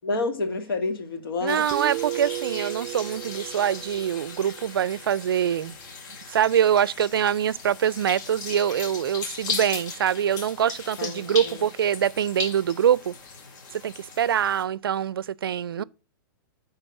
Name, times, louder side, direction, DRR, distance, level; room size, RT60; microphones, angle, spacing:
voice 1, 0.0-1.6 11.0-11.7 15.8-15.9, left 3 dB, 80° left, 1.8 m, -29 dB
voice 2, 1.4-5.7 6.3-13.1 13.7-15.8, right 9 dB, 90° right, 0.4 m, -24 dB
sound 1, 1.5-14.6, left 5 dB, 55° left, 2.2 m, -38 dB
Guitar, 1.7-5.2, right 17 dB, 30° right, 0.5 m, -35 dB
9.3 x 4.0 x 6.9 m
hypercardioid pair, 130°, 12 cm